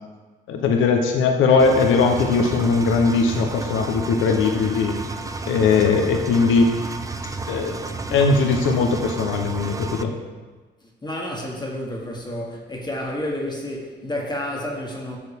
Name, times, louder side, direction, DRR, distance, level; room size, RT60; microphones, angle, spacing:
voice 1, 0.5-5.0 5.5-6.7 7.5-7.8 8.1-10.1, left 4 dB, 85° left, 4 dB, 0.8 m, -19 dB
Engine, 1.6-10.0, right 3 dB, 15° right, 0.5 m, -32 dB
voice 2, 10.8-15.2, left 1 dB, 20° left, -2 dB, 1.5 m, -30 dB
8.5 x 6.3 x 3.5 m, 1.3 s
cardioid pair, 90°, 20 cm